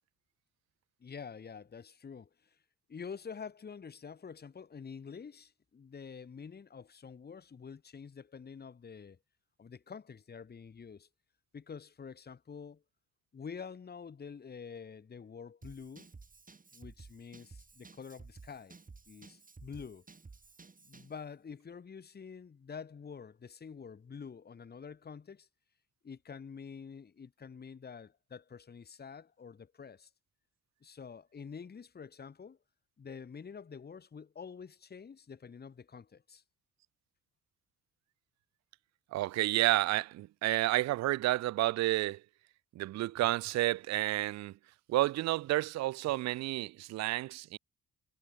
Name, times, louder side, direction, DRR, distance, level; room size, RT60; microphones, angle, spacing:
voice 1, 1.0-2.6 2.9-9.2 9.6-11.1 11.5-12.8 13.3-16.1 16.7-18.8 19.1-20.1 20.8-25.5 26.0-30.1 30.8-32.6 33.0-36.4, left 6 dB, 35° left, 1.5 m, -47 dB
Drum kit / Drum, 15.6-21.2, right 4 dB, 25° right, 7.5 m, -54 dB
voice 2, 39.1-42.2 42.8-44.5 44.9-47.6, right 16 dB, 65° right, 0.5 m, -30 dB
cardioid pair, 90°, 30 cm